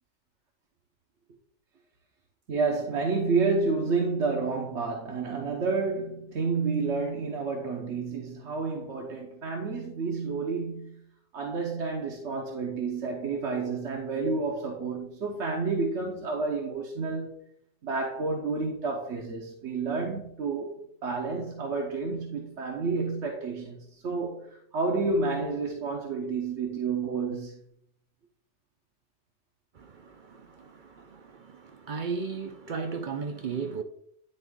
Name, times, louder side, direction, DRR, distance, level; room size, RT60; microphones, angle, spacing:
voice 1, 2.5-11.0 11.3-17.4 17.8-27.6, right 4 dB, 70° right, 1.2 m, -30 dB
voice 2, 29.7-33.8, right 5 dB, 55° right, 0.6 m, -36 dB
10.5 x 3.6 x 3.6 m
omnidirectional pair, 1.2 m